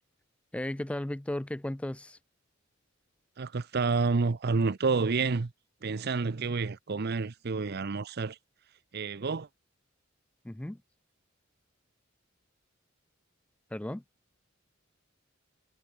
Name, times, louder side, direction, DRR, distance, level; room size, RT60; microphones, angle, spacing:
voice 1, 0.5-2.2 10.4-10.8 13.7-14.0, left 1 dB, 5° left, 0.3 m, -35 dB
voice 2, 3.4-5.5 5.8-8.4 8.9-9.5, right 4 dB, 50° right, 0.6 m, -29 dB
head